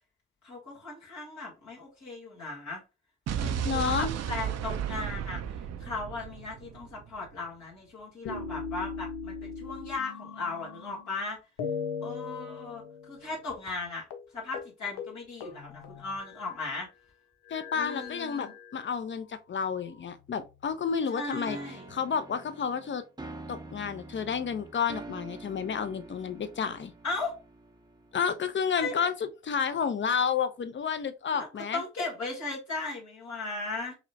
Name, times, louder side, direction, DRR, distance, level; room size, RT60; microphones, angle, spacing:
voice 1, 0.4-2.8 3.3-11.4 12.0-14.0 14.3-16.9 17.7-18.5 21.1-21.9 27.0-27.3 28.8-29.1 31.3-31.5 31.7-34.0, left 3 dB, 65° left, 1.7 m, -37 dB
Explosion, 3.3-7.3, right 8 dB, 55° right, 0.5 m, -34 dB
voice 2, 3.6-4.1 17.5-21.6 21.9-23.0 23.5-26.9 28.1-31.8, left 6 dB, 40° left, 0.6 m, -30 dB
sound 1, 8.3-11.2 11.6-13.4 13.7-13.8 14.1-14.3 14.5-14.7 15.0-16.7 17.5-19.0 19.8-20.7, left 5 dB, 80° left, 0.5 m, -39 dB
sound 2, 21.5-28.3, right 2 dB, 15° right, 0.6 m, -46 dB
4.9 x 2.1 x 2.7 m
hypercardioid pair, 40°, 30 cm